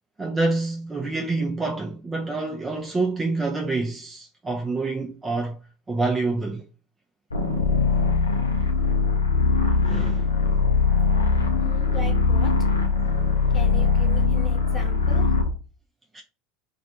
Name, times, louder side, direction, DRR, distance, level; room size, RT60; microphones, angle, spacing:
voice 1, 0.2-5.6 5.9-6.6 9.8-10.3 16.1-16.2, right 3 dB, 20° right, 0.4 m, -27 dB
sound 1, 7.3-15.5, left 4 dB, 85° left, 0.4 m, -21 dB
voice 2, 11.5-12.5 13.5-15.3, left 2 dB, 15° left, 1.1 m, -38 dB
2.5 x 2.1 x 2.6 m
figure-of-eight pair, 70°, 0 cm